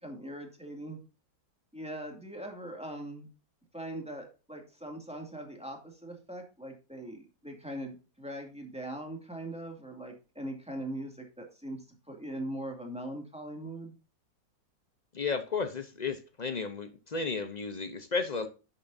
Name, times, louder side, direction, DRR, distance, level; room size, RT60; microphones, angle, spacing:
voice 1, 0.0-1.0 1.7-3.3 3.7-13.9, right 1 dB, 5° right, 2.1 m, -41 dB
voice 2, 15.1-18.5, left 4 dB, 90° left, 0.3 m, -33 dB
11.0 x 6.9 x 2.6 m
omnidirectional pair, 2.0 m